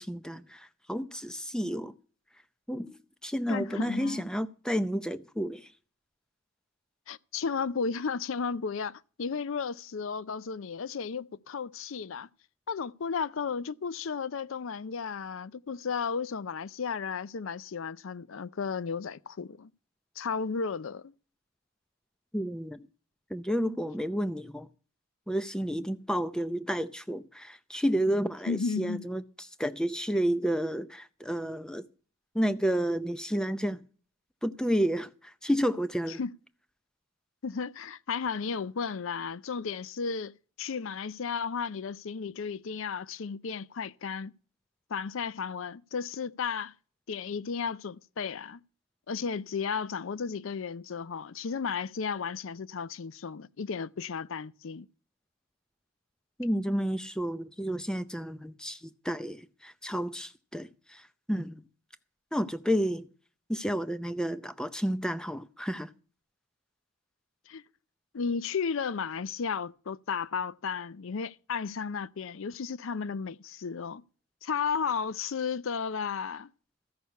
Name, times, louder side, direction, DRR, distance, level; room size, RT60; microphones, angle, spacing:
voice 1, 0.0-1.9 2.7-3.0 3.2-5.7 22.3-22.8 23.3-24.7 25.3-29.2 29.6-31.9 32.3-33.8 34.4-36.2 56.4-61.6 62.3-63.1 63.5-65.9, equal, 5° left, 0.5 m, -31 dB
voice 2, 3.5-4.2 7.1-12.3 12.7-19.7 20.2-21.1 28.5-29.0 36.1-36.3 37.4-44.3 44.9-46.7 47.1-48.6 49.1-54.9 67.5-67.6 68.1-74.0 74.4-76.5, left 5 dB, 65° left, 0.5 m, -34 dB
14.0 x 6.4 x 6.8 m
head